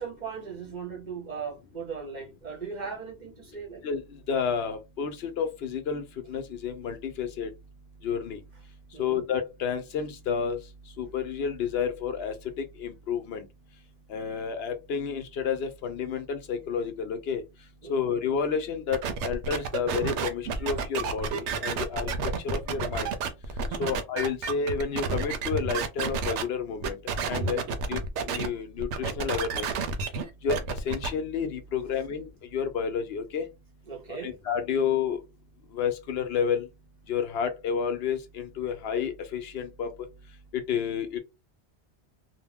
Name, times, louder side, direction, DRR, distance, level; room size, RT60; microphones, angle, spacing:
voice 1, 0.0-3.8 8.9-9.2 17.8-18.1 23.7-23.9 27.4-27.6 33.9-34.3, right 6 dB, 45° right, 0.7 m, -38 dB
voice 2, 4.3-7.5 8.0-8.4 9.0-10.6 11.0-13.4 14.1-17.4 17.9-22.1 22.4-23.1 23.8-27.0 27.3-27.6 27.9-28.0 28.3-29.7 30.4-30.6 30.8-33.5 34.1-35.2 35.7-36.7 37.1-40.1 40.5-41.2, left 6 dB, 65° left, 0.8 m, -30 dB
sound 1, 18.9-26.4 26.8-28.5 28.8-31.1, right 5 dB, 90° right, 0.9 m, -30 dB
2.4 x 2.1 x 3.4 m
omnidirectional pair, 1.1 m